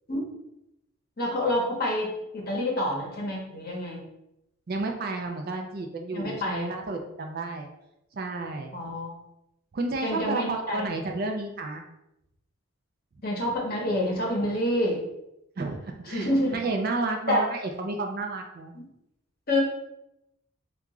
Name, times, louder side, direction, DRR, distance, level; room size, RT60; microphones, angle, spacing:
voice 1, 1.2-2.1 2.3-4.0 6.1-6.7 8.7-9.1 10.0-10.9 13.2-15.0 16.1-16.6 17.3-17.4 18.7-18.8 19.5-19.6, left 1 dB, 45° left, -1 dB, 0.8 m, -27 dB
voice 2, 4.7-7.7 8.1-8.7 9.7-11.8 15.6-18.7, right 3 dB, 45° right, 3 dB, 0.4 m, -31 dB
2.9 x 2.4 x 3.6 m, 0.85 s
head